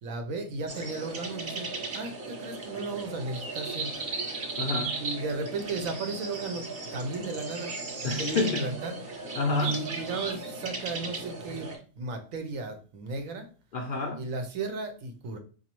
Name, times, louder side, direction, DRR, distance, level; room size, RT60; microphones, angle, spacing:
voice 1, 0.0-1.7 1.9-3.9 5.0-7.7 8.0-9.0 9.6-11.7 12.0-13.5 14.2-15.4, right 3 dB, 75° right, 5 dB, 1.1 m, -35 dB
sound 1, 0.7-11.8, right 3 dB, 50° right, 1.0 m, -36 dB
voice 2, 4.6-5.0 8.0-8.8 9.3-10.0 13.7-14.3, left 3 dB, 65° left, 0 dB, 0.5 m, -29 dB
4.0 x 2.6 x 3.0 m, 0.38 s
omnidirectional pair, 1.4 m